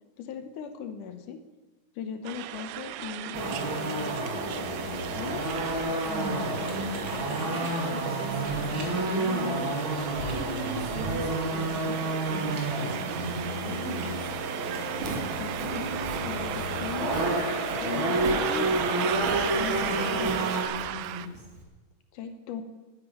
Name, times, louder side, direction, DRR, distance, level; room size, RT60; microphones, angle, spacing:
voice 1, 0.2-1.4 2.0-5.4 15.4-15.9 16.2-20.6 22.1-22.6, left 7 dB, 75° left, 8 dB, 2.4 m, -39 dB
sound 1, 2.2-21.3, right 14 dB, 90° right, 2.2 m, -37 dB
sound 2, 3.3-20.6, right 2 dB, 40° right, 2.9 m, -30 dB
voice 2, 6.0-9.6 10.3-12.0 12.3-12.5 12.8-14.1 14.5-15.2 19.7-20.2 20.8-21.3, equal, 20° right, -2 dB, 3.4 m, -38 dB
Walk footsteps, 14.8-21.6, right 3 dB, 70° right, 3.5 m, -40 dB
11.5 x 9.7 x 9.1 m, 1.2 s
omnidirectional pair, 3.7 m